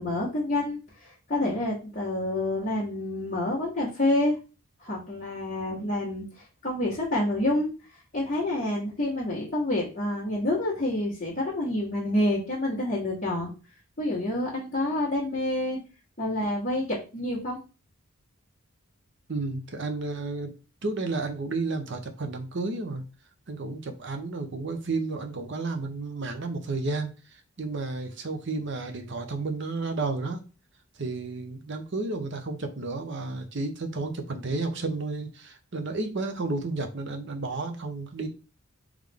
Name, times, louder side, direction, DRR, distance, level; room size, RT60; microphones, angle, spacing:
voice 1, 0.0-4.4 4.8-7.7 8.1-13.5 14.0-15.8 16.2-17.6, left 1 dB, 30° left, -9 dB, 1.3 m, -28 dB
voice 2, 19.3-20.5 20.8-23.0 23.5-30.4 31.0-38.3, right 3 dB, 55° right, 6 dB, 0.7 m, -32 dB
3.6 x 3.2 x 3.5 m, 0.32 s
head